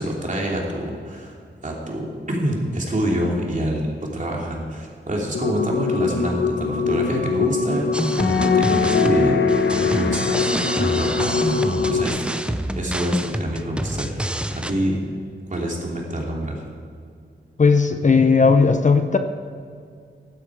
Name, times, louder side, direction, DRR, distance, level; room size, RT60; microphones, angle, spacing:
voice 1, 0.0-1.4 1.6-7.9 8.2-14.2 14.5-15.0 15.5-16.6, right 1 dB, 40° right, -2 dB, 2.9 m, -27 dB
sound 1, 5.3-12.1, left 4 dB, 70° left, 1.1 m, -22 dB
sound 2, 7.9-14.7, right 1 dB, 5° right, 0.6 m, -27 dB
voice 2, 17.6-19.2, left 4 dB, 40° left, 7 dB, 0.7 m, -16 dB
15.5 x 12.0 x 4.9 m, 2.2 s
wide cardioid pair, 105°, 20 cm